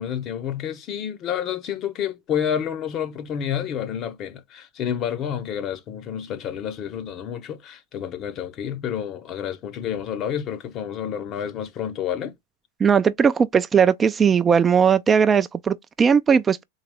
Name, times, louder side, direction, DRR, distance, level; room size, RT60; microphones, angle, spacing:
voice 1, 0.0-12.3, left 9 dB, 40° left, 0.7 m, -29 dB
voice 2, 12.8-16.6, right 6 dB, 20° right, 0.3 m, -18 dB
3.9 x 2.8 x 3.4 m
hypercardioid pair, 100°, 0 cm